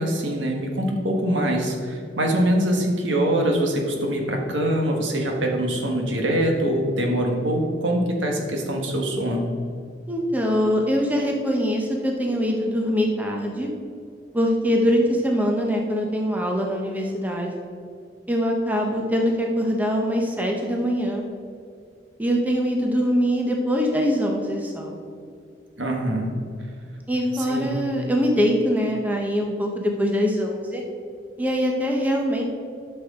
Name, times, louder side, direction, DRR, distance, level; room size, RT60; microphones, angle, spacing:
voice 1, 0.0-9.5 25.8-26.3 27.5-27.7, right 1 dB, 80° right, 1 dB, 1.5 m, -23 dB
voice 2, 10.1-13.7 14.3-17.5 18.3-21.3 22.2-25.0 27.1-30.8 31.4-32.4, equal, 10° right, 0 dB, 0.9 m, -23 dB
12.0 x 6.3 x 3.7 m, 2.3 s
head